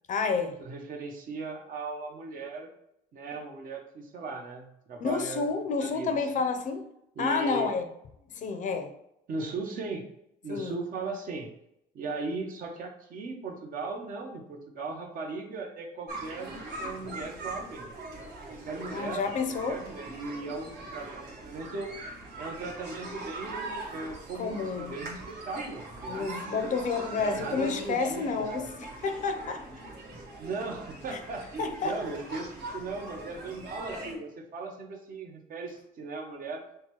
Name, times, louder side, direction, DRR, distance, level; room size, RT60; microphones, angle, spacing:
voice 1, 0.1-0.6 5.0-6.9 7.2-7.9 8.3-8.9 10.5-10.8 18.9-19.8 24.3-25.0 26.1-29.6 31.1-31.2 31.6-32.0, left 5 dB, 50° left, 7 dB, 0.6 m, -30 dB
voice 2, 0.6-2.7 3.1-5.5 5.8-6.1 7.2-7.7 9.3-10.1 10.4-11.5 11.9-17.9 18.5-19.2 19.6-21.9 22.4-26.8 27.2-28.7 30.4-32.5 32.7-36.6, right 3 dB, 55° right, 2 dB, 0.9 m, -37 dB
sound 1, 16.1-34.1, right 2 dB, 75° right, 1.5 m, -41 dB
6.3 x 2.2 x 3.0 m, 0.79 s
cardioid pair, 110°, 17 cm